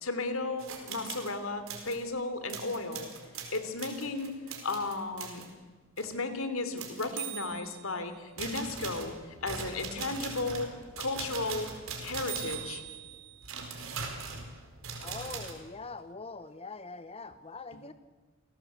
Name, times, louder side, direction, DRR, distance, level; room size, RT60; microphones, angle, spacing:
voice 1, 0.0-3.1 3.5-4.4 4.6-5.4 6.0-10.7 11.0-11.7 12.0-12.8, left 3 dB, 85° left, 9 dB, 3.2 m, -34 dB
sound 1, 0.6-1.3 1.7-2.0 2.5-5.5 6.0-6.2 6.8-7.9 8.4-15.5, right 6 dB, 80° right, 4.7 m, -40 dB
voice 2, 15.0-17.9, left 3 dB, 30° left, 12 dB, 0.8 m, -43 dB
28.5 x 18.5 x 8.2 m, 1.4 s
head